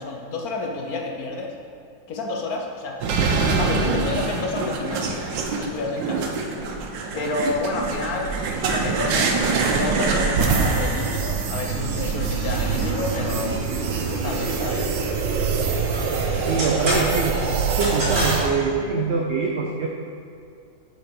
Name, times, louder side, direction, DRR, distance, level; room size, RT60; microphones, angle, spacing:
voice 1, 0.0-1.5 2.1-3.0 3.6-5.2 5.6-6.4 7.1-13.7 14.2-14.9 17.8-18.0, left 3 dB, 60° left, 1 dB, 1.2 m, -29 dB
sound 1, 3.0-18.5, right 5 dB, 85° right, 1.5 m, -24 dB
sound 2, 9.8-18.7, equal, 40° right, 2.7 m, -32 dB
voice 2, 16.4-17.4 17.8-19.9, right 4 dB, 70° right, 0 dB, 0.6 m, -24 dB
7.1 x 6.1 x 5.2 m, 2.3 s
omnidirectional pair, 1.9 m